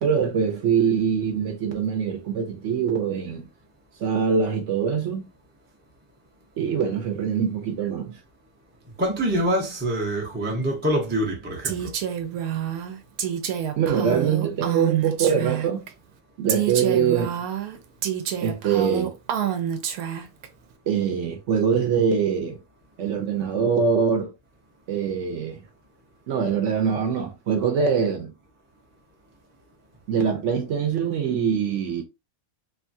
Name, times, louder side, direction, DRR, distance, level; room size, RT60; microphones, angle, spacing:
voice 1, 0.0-3.5 4.0-5.2 6.6-8.2 13.8-15.8 16.4-17.4 18.4-19.1 20.9-22.6 23.0-24.3 24.9-25.6 26.3-28.3 30.1-32.0, right 7 dB, 65° right, 0.9 m, -23 dB
voice 2, 9.0-11.9, right 1 dB, 15° right, 0.4 m, -25 dB
Female speech woman speaking, 11.6-15.9 16.5-20.5, right 9 dB, 85° right, 1.1 m, -28 dB
3.0 x 2.3 x 2.6 m
omnidirectional pair, 1.5 m